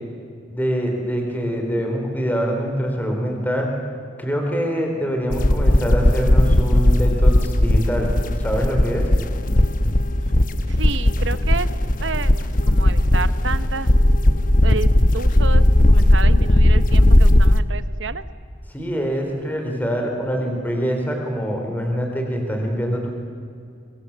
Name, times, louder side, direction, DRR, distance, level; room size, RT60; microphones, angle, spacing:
voice 1, 0.5-3.7 4.2-8.1 8.4-9.1 18.7-23.1, equal, 10° left, 2 dB, 3.9 m, -24 dB
sound 1, 5.3-17.6, left 1 dB, 45° left, 1.0 m, -16 dB
voice 2, 10.7-11.7 12.0-13.9 14.6-18.2, right 4 dB, 80° right, 13 dB, 1.0 m, -30 dB
25.5 x 24.0 x 7.3 m, 2.3 s
head